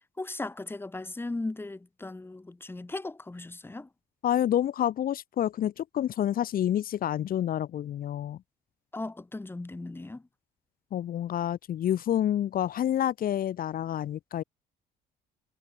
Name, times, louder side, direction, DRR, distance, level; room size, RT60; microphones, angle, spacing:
voice 1, 0.2-3.9 8.9-10.2, left 2 dB, 15° left, 5.0 m, -37 dB
voice 2, 4.2-8.4 10.9-14.4, left 11 dB, 60° left, 4.4 m, -28 dB
cardioid pair, 110°, 17 cm